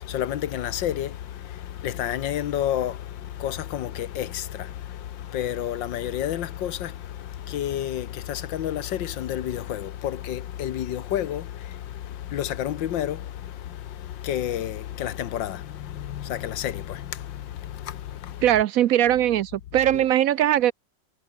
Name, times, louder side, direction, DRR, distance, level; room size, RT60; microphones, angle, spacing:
voice 1, 0.0-18.6 19.9-20.0, left 11 dB, 85° left, 1.7 m, -30 dB
voice 2, 18.4-20.7, right 12 dB, 70° right, 0.8 m, -20 dB
omnidirectional pair, 2.0 m